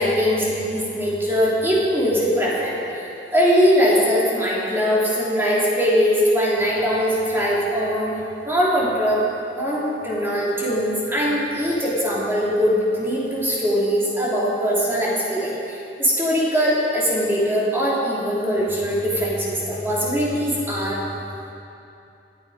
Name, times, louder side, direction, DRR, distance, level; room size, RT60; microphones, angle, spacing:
voice 1, 0.0-8.1 8.4-9.2 9.5-21.0, equal, 15° right, -6 dB, 3.1 m, -21 dB
19.5 x 9.2 x 5.0 m, 2.8 s
head